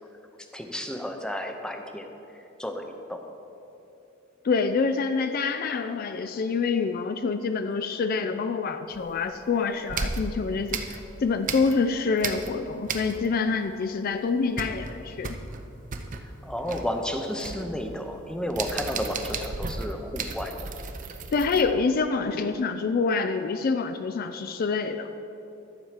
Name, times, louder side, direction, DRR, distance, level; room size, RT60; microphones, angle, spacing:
voice 1, 0.4-2.1 2.6-3.2 16.2-20.6, left 1 dB, 5° left, 4 dB, 0.6 m, -32 dB
voice 2, 4.4-15.4 21.3-25.1, left 4 dB, 45° left, 9 dB, 0.3 m, -26 dB
sound 1, 8.9-9.5 9.9-11.9 12.2-13.5 13.7-13.8 14.2-21.6, right 4 dB, 40° right, 0.6 m, -34 dB
12.0 x 4.7 x 7.3 m, 2.9 s
head